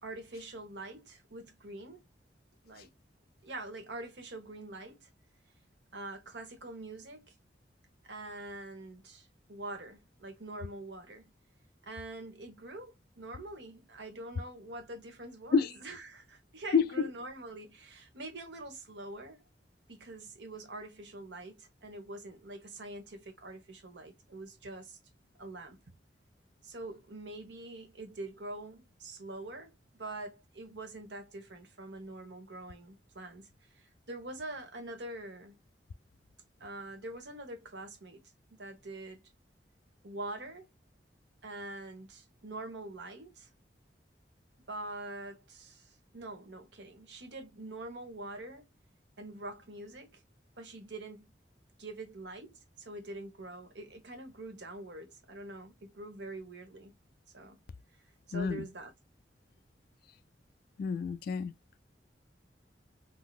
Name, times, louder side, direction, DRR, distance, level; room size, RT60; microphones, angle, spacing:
voice 1, 0.0-2.0 2.6-2.9 3.4-5.1 5.9-7.3 8.0-11.3 11.8-19.4 19.9-25.0 25.4-25.9 26.6-35.6 36.6-38.2 38.5-39.2 40.0-40.7 41.4-43.5 44.7-48.7 49.2-50.2 50.6-51.3 51.8-56.9 57.3-57.6 58.3-58.9, right 2 dB, 80° right, 1.3 m, -45 dB
voice 2, 58.3-58.7 60.8-61.5, left 5 dB, 55° left, 0.3 m, -28 dB
3.8 x 2.8 x 2.4 m
head